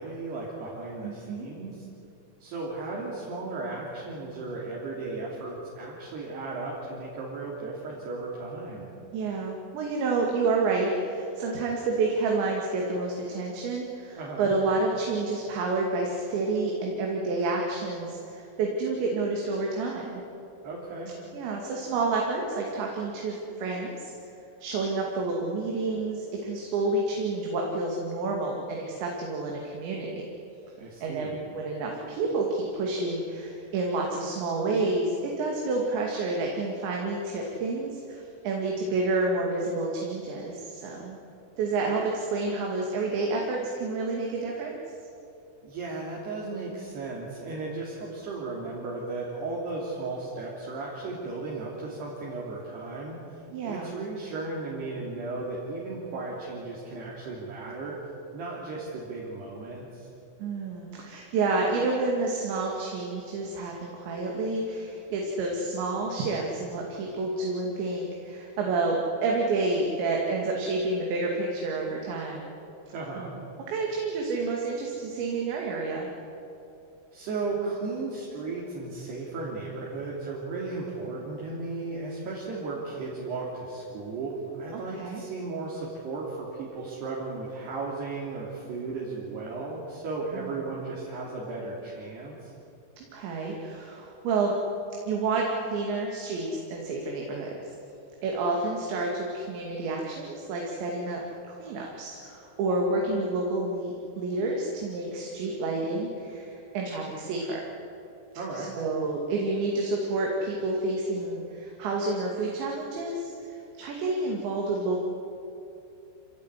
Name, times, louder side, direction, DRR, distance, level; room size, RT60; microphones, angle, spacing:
voice 1, 0.0-1.9 2.4-8.9 14.2-14.5 20.6-21.1 30.8-31.4 45.6-57.9 58.3-60.1 72.9-73.3 77.1-92.5 108.4-108.7, right 3 dB, 70° right, -5 dB, 5.1 m, -35 dB
voice 2, 1.0-1.5 9.1-20.2 21.3-24.1 24.6-30.2 31.0-41.2 41.6-44.8 53.5-53.9 60.4-72.5 73.2-73.4 73.7-76.1 84.7-85.2 90.3-90.5 93.1-94.5 95.1-97.6 98.2-101.2 101.5-107.6 108.6-115.0, right 3 dB, 85° right, -1 dB, 4.7 m, -29 dB
26.5 x 18.0 x 9.8 m, 2.7 s
omnidirectional pair, 5.0 m